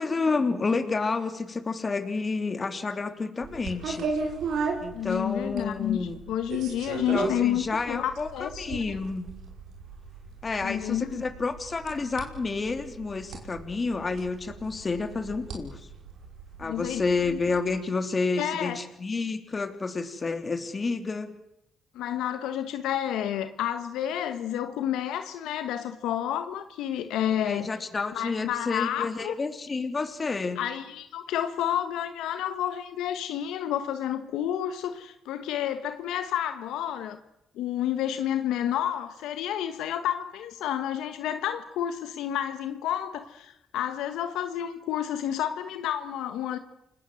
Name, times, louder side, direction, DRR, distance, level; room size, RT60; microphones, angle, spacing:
voice 1, 0.0-4.1 4.8-6.2 7.1-9.3 10.4-15.8 16.6-21.4 27.3-30.6, left 4 dB, 35° left, 8 dB, 3.3 m, -30 dB
sound 1, 3.4-17.6, right 4 dB, 75° right, 5.3 m, -37 dB
voice 2, 4.9-8.8 10.6-11.2 16.6-17.0 17.3-17.4 18.4-18.8 21.9-27.7 28.1-29.3 30.6-37.2 37.6-46.6, left 10 dB, 85° left, 9 dB, 1.3 m, -30 dB
29.0 x 19.0 x 7.7 m, 0.84 s
supercardioid pair, 65°, 0 cm